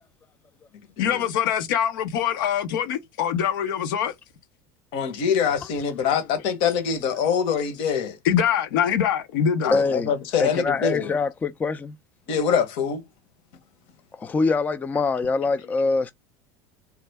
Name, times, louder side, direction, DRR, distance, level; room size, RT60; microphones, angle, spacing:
voice 1, 1.0-4.1 8.2-9.8, left 8 dB, 85° left, 0.7 m, -23 dB
voice 2, 4.9-8.2 9.6-11.1 12.3-13.0, left 7 dB, 65° left, 1.0 m, -24 dB
voice 3, 9.7-10.1 10.4-11.9 14.2-16.1, left 4 dB, 15° left, 0.3 m, -24 dB
3.3 x 2.1 x 3.3 m
supercardioid pair, 125°, 11 cm